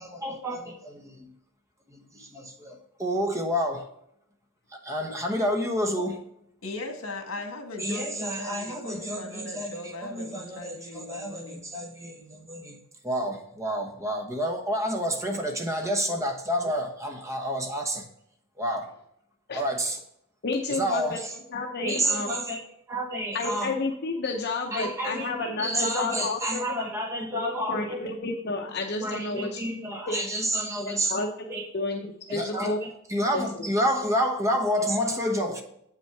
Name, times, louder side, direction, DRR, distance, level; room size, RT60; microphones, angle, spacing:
voice 1, 0.0-0.7 1.0-1.3 1.9-2.0 2.3-3.9 4.7-6.2 7.8-12.8 13.0-18.1 18.6-18.9 19.5-20.0 20.7-21.4 21.8-23.7 24.7-28.1 28.6-31.2 31.5-31.7 32.3-35.6, equal, 15° right, 1.0 m, -29 dB
voice 2, 6.6-11.6, left 2 dB, 80° left, 1.6 m, -39 dB
voice 3, 20.4-22.4 23.3-26.6 27.3-29.6 30.1-30.2 31.0-31.3 31.7-32.8 33.3-33.6, left 3 dB, 55° left, 0.8 m, -31 dB
8.0 x 5.7 x 4.6 m
head